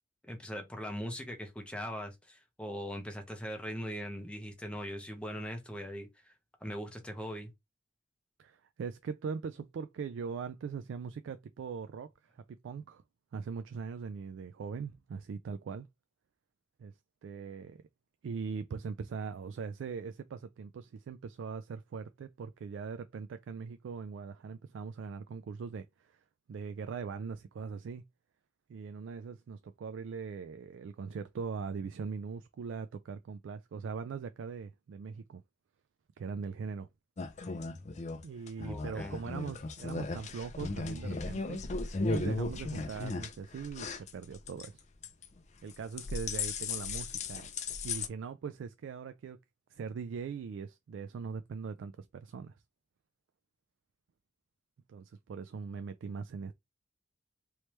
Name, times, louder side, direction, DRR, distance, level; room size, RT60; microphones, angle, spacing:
voice 1, 0.2-6.3 6.6-7.5 38.6-39.2, equal, 5° left, 0.8 m, -40 dB
voice 2, 8.4-12.1 12.3-13.0 13.3-15.9 16.8-16.9 17.2-17.8 18.2-26.2 26.5-28.0 28.7-35.4 36.2-36.9 38.2-44.8 45.6-47.5 47.8-49.4 49.7-52.5 54.9-56.5, right 5 dB, 85° right, 0.3 m, -41 dB
sound 1, 37.2-44.7 45.0-45.4 45.7-48.1, left 3 dB, 40° left, 0.5 m, -36 dB
3.2 x 3.1 x 3.0 m
head